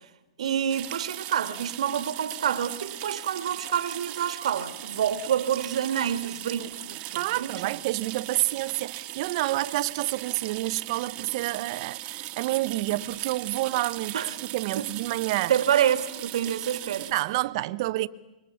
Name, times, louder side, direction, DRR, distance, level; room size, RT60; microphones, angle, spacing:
voice 1, 0.4-7.6 14.1-14.3 14.8-14.9 15.5-17.1, right 9 dB, 70° right, 1.8 m, -27 dB
sound 1, 0.7-17.1, right 16 dB, 35° right, 1.7 m, -39 dB
voice 2, 7.1-15.5 17.0-18.1, right 17 dB, 50° right, 1.0 m, -29 dB
27.5 x 24.0 x 7.1 m
hypercardioid pair, 125°, 4 cm